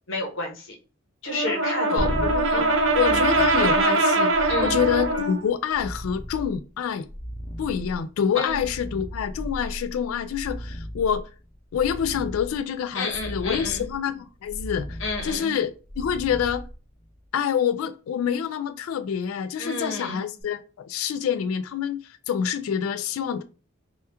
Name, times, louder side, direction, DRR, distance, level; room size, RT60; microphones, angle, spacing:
voice 1, 0.1-0.8 1.2-2.0 2.5-2.7 3.1-3.2 4.5-4.8 8.4-8.6 12.9-13.8 15.0-15.6 19.6-20.2, left 2 dB, 65° left, 0.8 m, -31 dB
Brass instrument, 1.3-5.4, right 2 dB, 65° right, 0.5 m, -22 dB
voice 2, 1.9-2.7 2.9-7.1 7.6-11.3 11.7-16.6 17.3-23.4, left 8 dB, 80° left, 0.3 m, -27 dB
sound 1, 2.0-17.3 20.4-20.5, equal, 10° left, 0.6 m, -36 dB
2.9 x 2.3 x 3.3 m
head